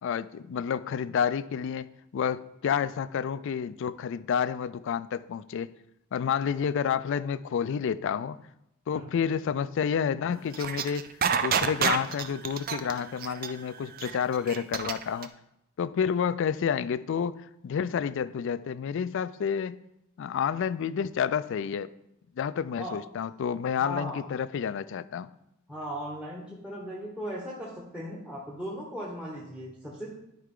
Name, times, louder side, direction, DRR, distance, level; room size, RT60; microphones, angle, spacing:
voice 1, 0.0-5.7 6.1-8.4 8.9-11.1 11.4-15.3 15.8-19.8 20.2-21.9 22.4-25.3, left 7 dB, 60° left, 0.3 m, -29 dB
sound 1, 10.5-15.2, right 7 dB, 45° right, 0.4 m, -28 dB
voice 2, 23.8-24.2 25.7-30.1, equal, 5° right, 1.1 m, -37 dB
11.5 x 4.7 x 3.7 m
head